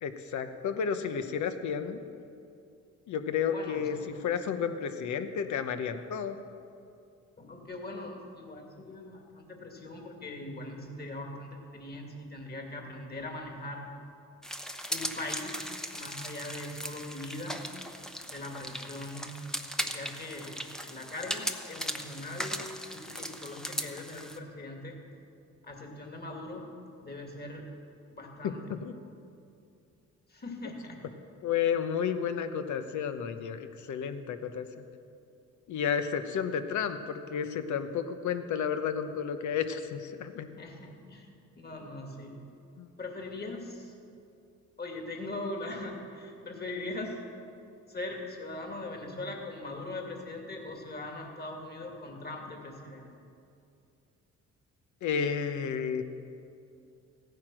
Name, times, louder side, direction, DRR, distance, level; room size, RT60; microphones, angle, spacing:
voice 1, 0.0-2.0 3.1-6.4 28.4-29.0 31.4-34.8 35.7-40.5 42.8-42.9 55.0-56.0, left 7 dB, 70° left, 9 dB, 1.0 m, -32 dB
voice 2, 3.4-3.9 7.4-13.9 14.9-17.7 18.3-19.5 19.7-25.0 25.6-26.7 27.0-27.7 28.1-28.7 30.3-31.0 40.6-42.4 43.0-44.0 44.8-47.2 47.9-53.1, left 2 dB, 30° left, 1 dB, 2.5 m, -41 dB
sound 1, 14.4-24.4, equal, ahead, 0.8 m, -38 dB
15.5 x 9.5 x 6.2 m, 2.5 s
cardioid pair, 90°, 30 cm